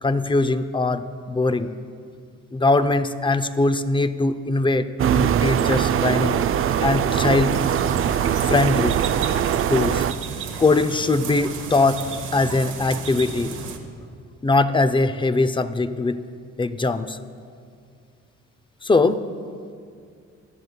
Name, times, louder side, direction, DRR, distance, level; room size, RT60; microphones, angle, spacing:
voice 1, 0.0-1.7 2.5-4.8 5.1-6.4 6.8-7.6 8.5-9.0 9.7-10.0 10.6-12.1 12.3-13.6 14.4-16.2 16.6-17.2 18.8-19.2, left 3 dB, 15° left, 11 dB, 0.5 m, -21 dB
sound 1, 5.0-10.1, right 9 dB, 45° right, 0.4 m, -21 dB
sound 2, 7.5-13.8, right 6 dB, 85° right, 1.3 m, -33 dB
20.0 x 12.0 x 2.3 m, 2.2 s
cardioid pair, 90°, 30 cm